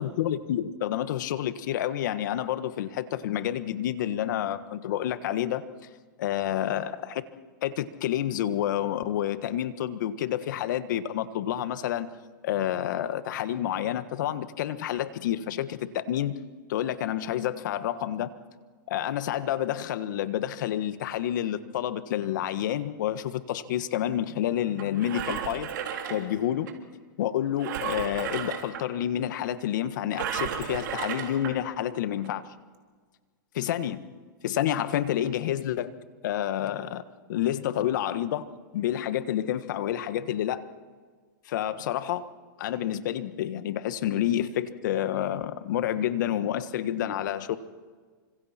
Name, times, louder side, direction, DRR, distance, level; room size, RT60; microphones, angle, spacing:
voice 1, 0.0-5.6 6.2-7.2 7.6-12.1 12.4-16.4 16.7-18.3 18.9-25.7 26.1-26.7 27.2-32.5 33.5-34.1 34.4-35.9 36.2-37.0 37.3-38.4 38.7-40.7 41.5-42.3 42.6-47.6, left 11 dB, 60° left, 12 dB, 1.5 m, -29 dB
Engine, 24.8-26.7 27.6-28.8 30.1-31.5 32.2-32.3, right 8 dB, 65° right, 3.5 m, -33 dB
29.0 x 26.0 x 4.4 m, 1.5 s
hypercardioid pair, 145°, 11 cm